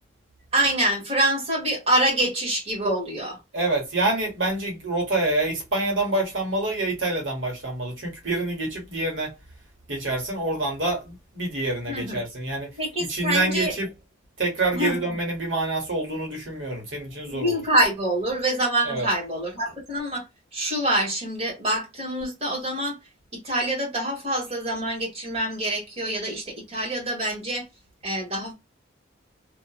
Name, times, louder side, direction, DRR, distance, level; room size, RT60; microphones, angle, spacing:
voice 1, 0.5-3.4 11.8-12.2 12.8-13.7 14.7-15.1 17.3-20.2 20.5-23.0 23.3-27.6 28.0-28.5, right 1 dB, 30° right, 1.4 m, -26 dB
voice 2, 3.5-9.3 9.9-12.7 13.1-13.9 14.4-17.6 18.8-19.1, right 2 dB, 70° right, 1.2 m, -27 dB
2.8 x 2.4 x 2.4 m
head